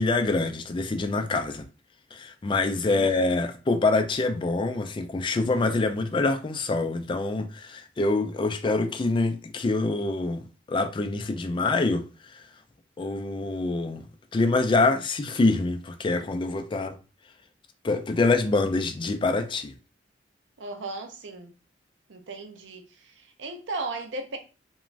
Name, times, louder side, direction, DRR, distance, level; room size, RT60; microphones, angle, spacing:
voice 1, 0.0-1.6 2.1-12.0 12.3-12.4 13.0-14.0 14.3-17.0 17.8-19.7, left 3 dB, 25° left, 0.3 m, -25 dB
voice 2, 20.6-21.5 22.1-22.9 23.2-24.4, right 2 dB, 85° right, 0.5 m, -36 dB
2.4 x 2.2 x 3.1 m
head